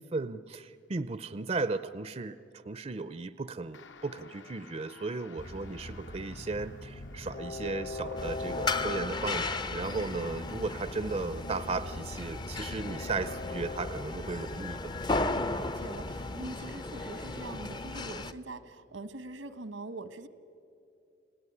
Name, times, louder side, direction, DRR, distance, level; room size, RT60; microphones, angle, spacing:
voice 1, 0.0-14.9, right 3 dB, 30° right, 14 dB, 0.5 m, -36 dB
sound 1, 3.7-8.6, left 5 dB, 70° left, 1.0 m, -54 dB
Train, 5.4-16.6, left 2 dB, 45° left, 1.0 m, -42 dB
sound 2, 8.2-18.3, left 3 dB, 25° left, 0.5 m, -35 dB
voice 2, 15.2-20.3, right 2 dB, 85° right, 12 dB, 1.3 m, -43 dB
29.5 x 17.5 x 9.9 m, 2.7 s
head